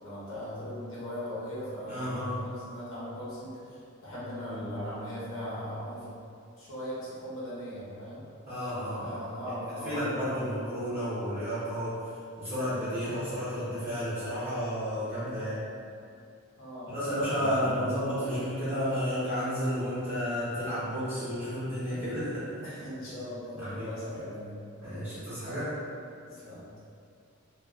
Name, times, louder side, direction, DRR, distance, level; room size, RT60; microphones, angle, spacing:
voice 1, 0.0-6.2 6.6-8.2 9.0-10.5 16.6-17.8 18.3-18.4 22.6-24.5 26.3-26.8, equal, 75° left, -10 dB, 0.9 m, -39 dB
voice 2, 1.8-2.4 8.5-9.2 9.8-12.1 12.4-15.6 16.9-22.7 23.5-23.9 24.8-25.7, equal, 30° right, -14 dB, 0.8 m, -32 dB
2.4 x 2.3 x 2.3 m, 2.4 s
head